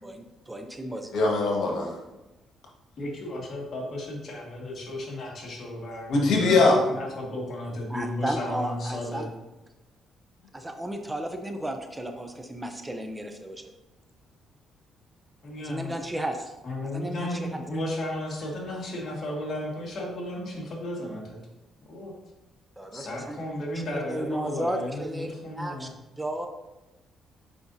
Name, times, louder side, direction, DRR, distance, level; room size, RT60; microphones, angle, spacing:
voice 1, 0.0-1.3 7.9-9.3 10.5-13.6 15.6-16.5 16.9-17.4 22.8-23.4 24.1-25.9 26.2-26.5, right 1 dB, 15° right, 5 dB, 0.6 m, -34 dB
voice 2, 1.1-1.9 6.1-6.8, left 3 dB, 80° left, -1 dB, 1.5 m, -21 dB
voice 3, 3.0-9.3 15.4-16.1 16.6-21.4 21.9-22.2 22.9-25.9, left 1 dB, 50° left, -2 dB, 1.9 m, -34 dB
7.1 x 5.2 x 2.7 m, 1.0 s
cardioid pair, 90°, 0 cm